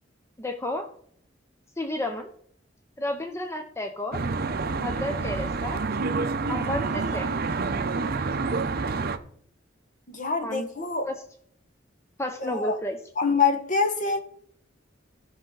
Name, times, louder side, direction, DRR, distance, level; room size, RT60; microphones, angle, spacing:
voice 1, 0.4-0.9 1.8-2.3 3.0-4.2 4.8-5.8 6.5-7.3 10.4-10.7 11.1-11.2 12.2-13.0, left 1 dB, 15° left, 0.6 m, -31 dB
Traffic noise roadway noise, 4.1-9.2, right 4 dB, 55° right, 0.7 m, -28 dB
voice 2, 10.1-11.1 12.4-12.8 13.2-14.2, left 5 dB, 45° left, 1.3 m, -25 dB
15.0 x 5.5 x 3.9 m
head